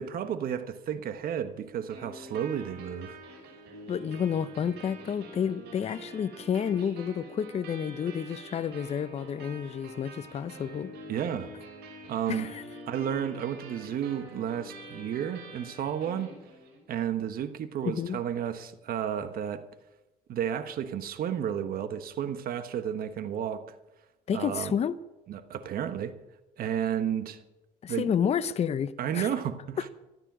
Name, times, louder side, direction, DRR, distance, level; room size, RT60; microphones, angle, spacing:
voice 1, 0.0-3.2 11.1-11.5 12.1-12.5 12.9-16.3 16.9-19.6 20.3-23.6 24.3-24.7 25.3-26.1 26.6-27.4 27.9-28.1 29.0-29.9, right 9 dB, 60° right, 1.3 m, -32 dB
sound 1, 1.9-16.9, right 1 dB, 75° right, 6.5 m, -46 dB
voice 2, 3.9-10.9 12.3-12.6 17.8-18.2 24.3-24.9 27.8-29.3, left 8 dB, 40° left, 0.7 m, -30 dB
14.5 x 12.5 x 6.1 m
cardioid pair, 110°, 17 cm